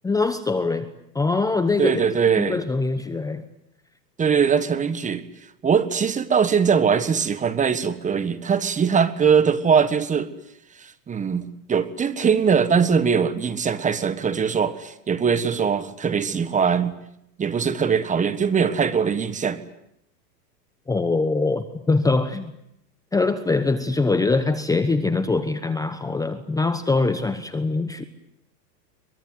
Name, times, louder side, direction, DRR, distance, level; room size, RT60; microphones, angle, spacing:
voice 1, 0.0-2.0 2.4-3.4 20.9-22.5 23.1-28.1, left 3 dB, 5° left, 10 dB, 1.0 m, -23 dB
voice 2, 1.8-2.6 4.2-5.2 5.6-10.3 10.8-16.9 17.4-19.6, right 6 dB, 15° right, 13 dB, 1.5 m, -21 dB
23.0 x 22.5 x 9.4 m, 0.78 s
hypercardioid pair, 135°, 49 cm